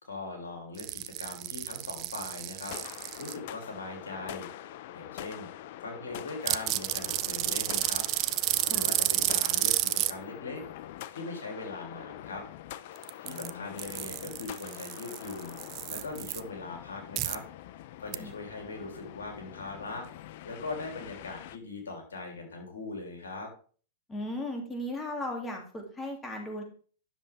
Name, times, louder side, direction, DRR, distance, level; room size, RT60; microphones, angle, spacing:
voice 1, 0.0-2.8 3.2-5.5 5.8-8.0 8.6-10.6 11.1-12.4 13.2-15.6 15.9-17.4 18.0-20.1 20.4-23.5, left 3 dB, 85° left, 2 dB, 3.0 m, -40 dB
sound 1, 0.8-3.3 6.5-10.1 13.0-13.5 13.8-16.4 17.2-17.4 18.1-18.2, right 17 dB, 45° right, 0.4 m, -31 dB
sound 2, 2.7-21.6, left 12 dB, 60° left, 0.5 m, -45 dB
voice 2, 13.2-13.7 18.2-18.4 24.1-26.6, left 1 dB, 15° left, 2 dB, 2.6 m, -37 dB
10.0 x 6.8 x 3.4 m, 0.42 s
hypercardioid pair, 115°, 0 cm